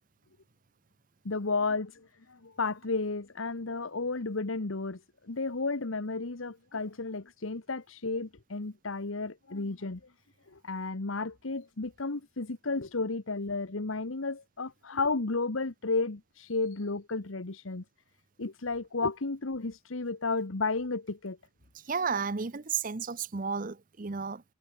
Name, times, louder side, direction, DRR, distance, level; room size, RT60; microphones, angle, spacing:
voice 1, 1.2-5.0 5.3-10.0 10.5-17.8 18.4-21.4, left 3 dB, 90° left, 1.3 m, -33 dB
voice 2, 21.7-24.4, right 5 dB, 40° right, 0.7 m, -33 dB
head